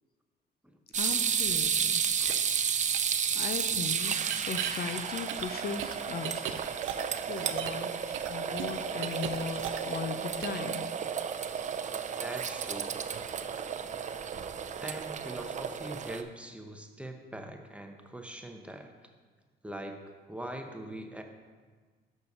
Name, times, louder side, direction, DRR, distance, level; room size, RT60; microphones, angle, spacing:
voice 1, 0.9-2.0 3.3-6.6 7.2-10.9, left 6 dB, 50° left, 8 dB, 0.5 m, -38 dB
sound 1, 0.9-16.2, right 7 dB, 40° right, 0.4 m, -32 dB
sound 2, 2.2-2.3 2.9-3.0 4.2-4.7 5.3-7.9 8.1-10.1 10.4-10.6, right 11 dB, 90° right, 0.5 m, -37 dB
voice 2, 12.2-13.0 14.8-18.9 19.6-20.0 20.3-21.2, right 1 dB, 5° right, 4 dB, 0.8 m, -42 dB
6.5 x 5.7 x 5.3 m, 1.5 s
cardioid pair, 90°, 20 cm